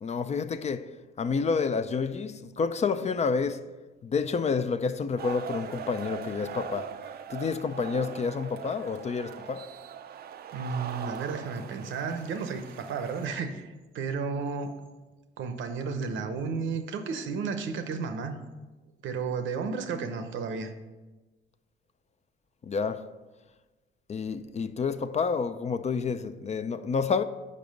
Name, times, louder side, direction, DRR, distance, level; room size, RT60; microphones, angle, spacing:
voice 1, 0.0-3.7 4.0-6.9 7.3-9.7 22.6-23.1 24.1-27.2, left 5 dB, 35° left, 0.4 m, -29 dB
sound 1, 5.2-13.3, right 8 dB, 50° right, 0.4 m, -41 dB
voice 2, 10.5-14.8 15.4-18.4 19.0-20.7, right 5 dB, 75° right, 0.8 m, -33 dB
5.4 x 4.9 x 6.4 m
cardioid pair, 90°, 20 cm